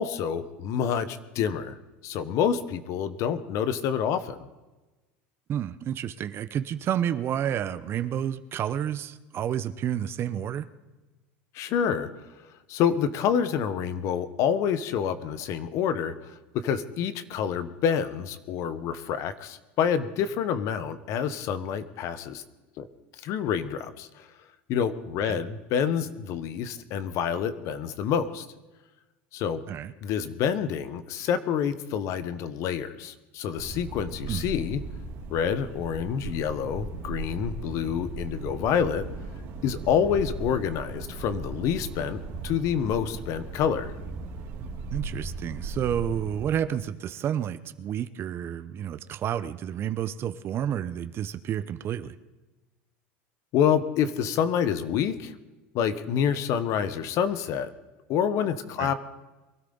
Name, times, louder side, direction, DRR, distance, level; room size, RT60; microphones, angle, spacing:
voice 1, 0.0-1.8 2.0-4.5 11.5-12.1 12.7-16.4 16.6-22.4 22.8-22.9 23.2-24.3 24.7-28.5 29.3-29.6 30.0-34.8 35.3-39.1 39.6-43.9 53.5-55.3 55.7-57.7 58.1-58.9, left 8 dB, 55° left, 12 dB, 1.0 m, -27 dB
voice 2, 5.5-10.7 25.2-25.4 29.7-29.9 34.3-34.4 44.9-52.2 58.8-58.9, right 10 dB, 40° right, 13 dB, 0.7 m, -30 dB
sound 1, 33.6-46.5, right 3 dB, 60° right, 2.7 m, -37 dB
23.0 x 13.0 x 3.9 m, 1.1 s
supercardioid pair, 110°, 6 cm